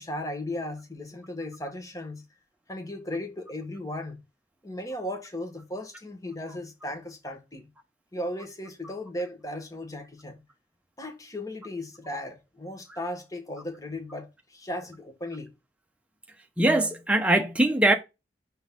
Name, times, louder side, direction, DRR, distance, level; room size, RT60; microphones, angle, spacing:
voice 1, 0.0-2.2 2.7-4.2 4.6-7.7 8.1-10.4 11.0-15.5, left 1 dB, 20° left, 1.3 m, -36 dB
voice 2, 16.6-17.9, right 1 dB, 5° right, 0.8 m, -21 dB
6.0 x 3.9 x 5.2 m
head